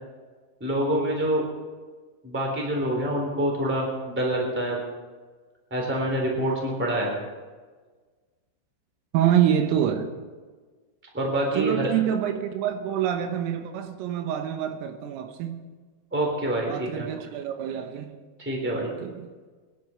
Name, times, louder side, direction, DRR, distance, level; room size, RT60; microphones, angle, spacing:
voice 1, 0.6-1.4 2.2-4.8 5.7-7.1 11.1-11.9 16.1-17.1 18.4-18.9, right 1 dB, 5° right, 2.5 m, -26 dB
voice 2, 9.1-10.1 11.6-15.7 16.7-18.1 18.7-19.3, right 10 dB, 85° right, 3.6 m, -26 dB
24.5 x 11.0 x 4.5 m
omnidirectional pair, 5.9 m